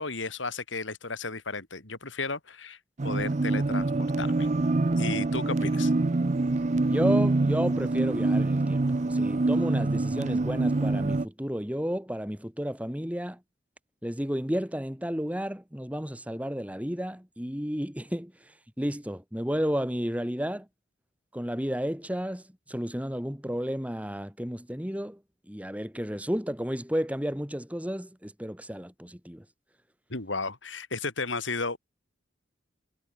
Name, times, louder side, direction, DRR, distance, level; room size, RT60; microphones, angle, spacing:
voice 1, 0.0-2.8 3.0-4.5 5.0-5.9 30.1-31.8, left 3 dB, 75° left, 4.3 m, -34 dB
sound 1, 3.0-11.2, right 2 dB, 35° right, 0.6 m, -25 dB
voice 2, 6.9-13.4 14.0-18.3 18.8-20.7 21.3-22.4 22.7-25.2 25.5-29.4, equal, 5° right, 2.3 m, -32 dB
head